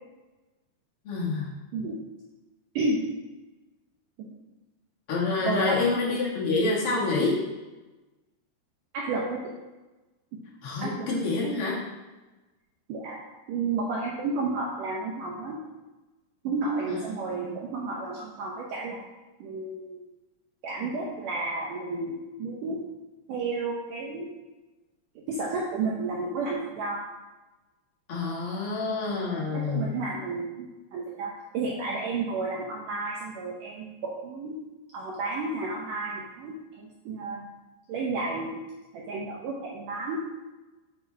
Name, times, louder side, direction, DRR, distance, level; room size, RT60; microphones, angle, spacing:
voice 1, 1.0-1.5 5.1-7.3 10.6-11.8 16.9-17.5 28.1-29.9, left 3 dB, 50° left, -5 dB, 1.8 m, -27 dB
voice 2, 5.4-5.9 8.9-9.5 10.3-10.4 10.8-11.1 12.9-13.2 13.5-15.6 16.4-19.0 19.4-20.0 20.6-22.8 23.3-24.3 25.3-27.0 29.5-34.6 34.9-37.5 37.9-38.6 38.9-40.2, right 3 dB, 80° right, -3 dB, 1.9 m, -31 dB
6.8 x 5.3 x 4.5 m, 1.1 s
omnidirectional pair, 4.7 m